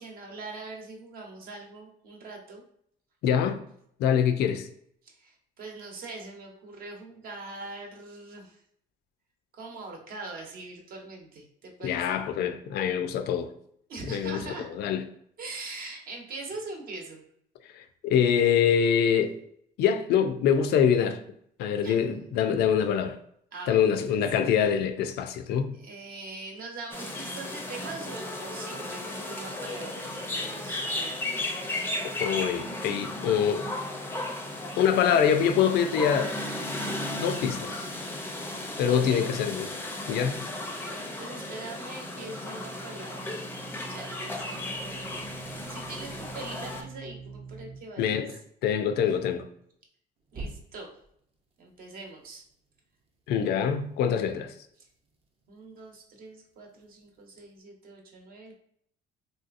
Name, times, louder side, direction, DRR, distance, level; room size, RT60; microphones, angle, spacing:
voice 1, 0.0-2.6 5.0-8.6 9.5-12.2 13.9-14.7 15.4-17.2 21.8-22.1 23.5-24.3 25.7-31.3 38.9-39.3 40.8-43.5 43.8-45.3 45.7-48.3 50.3-51.0 51.6-52.4 54.8-54.9 55.5-58.5, right 3 dB, 60° right, 0.9 m, -42 dB
voice 2, 3.2-3.6 4.0-4.7 11.8-13.5 14.1-14.4 14.7-15.0 17.7-19.3 19.8-21.2 21.6-23.2 23.7-25.7 32.2-33.7 34.8-36.3 37.2-37.9 38.8-39.7 40.1-40.5 48.0-48.4 48.6-49.5 53.3-54.5, left 8 dB, 70° left, 0.4 m, -24 dB
sound 1, 26.9-46.8, left 1 dB, 15° left, 0.5 m, -35 dB
sound 2, 42.0-47.8 50.3-51.1, right 4 dB, 35° right, 0.5 m, -44 dB
3.2 x 2.7 x 2.4 m
cardioid pair, 110°, 17 cm